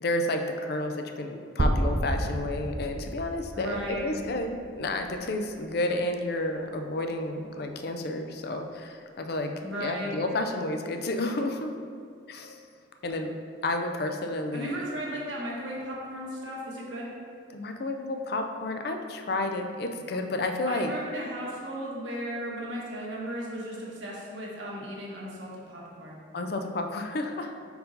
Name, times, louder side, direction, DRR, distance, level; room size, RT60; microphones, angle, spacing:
voice 1, 0.0-9.5 9.8-11.7 12.3-12.6 13.0-13.3 13.6-14.9 17.5-20.9 26.3-27.5, left 2 dB, 55° left, 5 dB, 0.4 m, -31 dB
sound 1, 1.6-5.5, right 1 dB, 35° right, 0.5 m, -31 dB
voice 2, 3.5-4.2 9.6-10.2 14.5-17.1 20.7-26.2, equal, 80° right, -4 dB, 1.3 m, -36 dB
5.2 x 4.6 x 3.9 m, 2.1 s
head